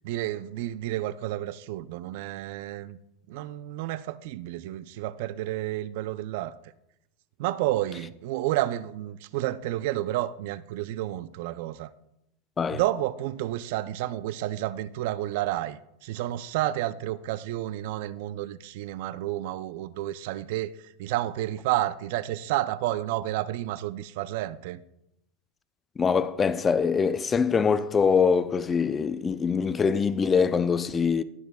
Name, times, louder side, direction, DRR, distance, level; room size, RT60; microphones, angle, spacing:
voice 1, 0.0-3.0 3.3-6.6 7.4-11.9 12.7-24.8, right 14 dB, 60° right, 0.4 m, -30 dB
voice 2, 26.0-31.2, left 6 dB, 20° left, 0.3 m, -23 dB
19.5 x 6.9 x 2.2 m
supercardioid pair, 145°, 0 cm